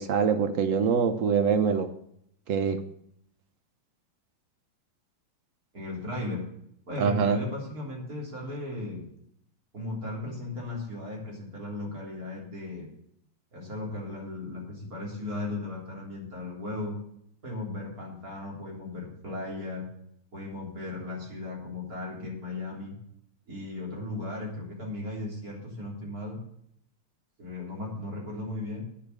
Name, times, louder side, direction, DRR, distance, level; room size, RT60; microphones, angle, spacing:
voice 1, 0.0-1.9 2.5-2.8 7.0-7.4, right 6 dB, 75° right, 9 dB, 0.7 m, -24 dB
voice 2, 5.7-6.4 6.9-9.0 9.7-12.9 13.5-16.9 17.4-19.9 20.3-23.0 23.5-26.4 27.4-28.8, left 2 dB, 40° right, -3 dB, 4.2 m, -36 dB
9.9 x 7.2 x 8.3 m, 0.72 s
omnidirectional pair, 2.3 m